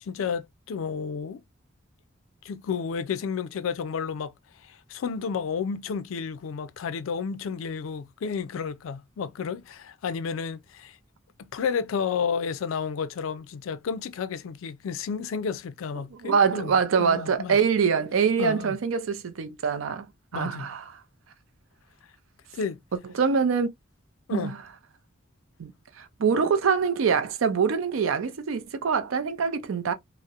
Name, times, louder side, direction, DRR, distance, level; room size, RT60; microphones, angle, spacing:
voice 1, 0.0-1.4 2.4-4.3 4.6-11.0 11.4-17.6 18.4-18.8 20.3-20.7 22.5-22.8 24.3-24.5, left 6 dB, 90° left, 0.4 m, -31 dB
voice 2, 16.2-20.1 20.3-20.8 23.1-23.7 24.3-24.6 25.6-25.7 26.0-29.9, right 6 dB, 90° right, 0.4 m, -24 dB
2.8 x 2.0 x 2.3 m
head